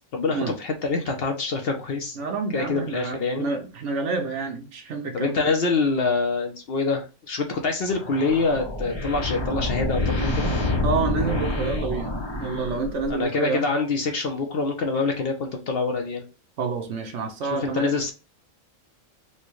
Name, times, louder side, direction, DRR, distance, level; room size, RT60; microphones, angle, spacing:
voice 1, 0.1-2.2 2.5-3.5 5.1-10.5 13.1-16.2 17.5-18.1, left 4 dB, 60° left, 0.7 m, -25 dB
voice 2, 2.1-5.5 10.8-13.7 16.6-17.9, right 4 dB, 70° right, 1.0 m, -28 dB
sound 1, 7.9-13.3, left 1 dB, 25° left, 0.7 m, -27 dB
4.3 x 2.2 x 3.0 m
omnidirectional pair, 1.3 m